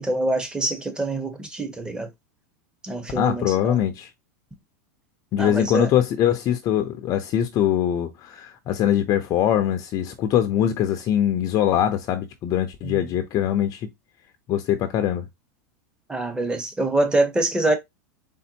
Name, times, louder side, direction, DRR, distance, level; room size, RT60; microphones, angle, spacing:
voice 1, 0.0-2.1 2.8-3.8 5.4-5.9 12.8-13.1 16.1-17.7, right 2 dB, 10° right, 1.1 m, -25 dB
voice 2, 3.1-4.1 5.3-13.9 14.5-15.2, left 10 dB, 40° left, 0.7 m, -22 dB
4.3 x 3.5 x 2.8 m
supercardioid pair, 125°, 9 cm